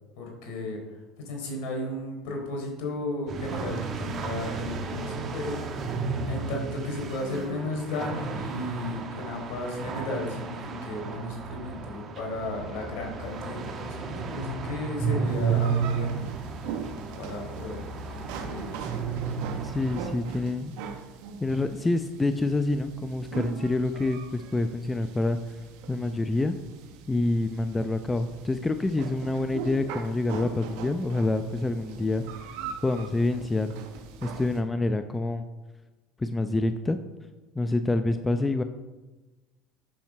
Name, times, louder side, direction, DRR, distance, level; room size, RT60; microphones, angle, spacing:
voice 1, 0.2-6.0 6.2-16.3 16.9-17.8 18.1-19.2, left 2 dB, 65° left, 1 dB, 3.9 m, -35 dB
sound 1, 3.3-20.0, right 6 dB, 45° right, 1.6 m, -33 dB
sound 2, 15.2-34.6, right 6 dB, 65° right, 1.4 m, -41 dB
voice 2, 19.6-20.7 21.4-25.4 25.9-26.5 27.1-32.2 32.8-33.7 34.2-35.4 36.2-37.0 37.6-38.6, left 2 dB, 15° left, 9 dB, 0.7 m, -27 dB
11.5 x 7.4 x 5.5 m, 1.2 s
hypercardioid pair, 70°, 0 cm